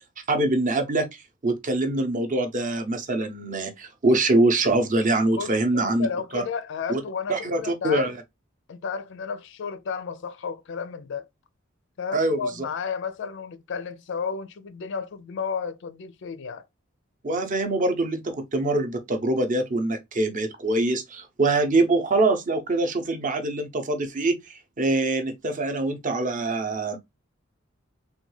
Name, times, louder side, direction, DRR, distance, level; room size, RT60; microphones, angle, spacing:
voice 1, 0.3-6.1 6.3-6.4 6.9-7.0 7.3-8.2 12.1-12.4 17.2-27.0, right 2 dB, 40° right, 0.6 m, -24 dB
voice 2, 5.3-8.1 8.7-11.3 12.0-16.7, left 5 dB, 65° left, 0.4 m, -32 dB
3.5 x 2.3 x 3.1 m
head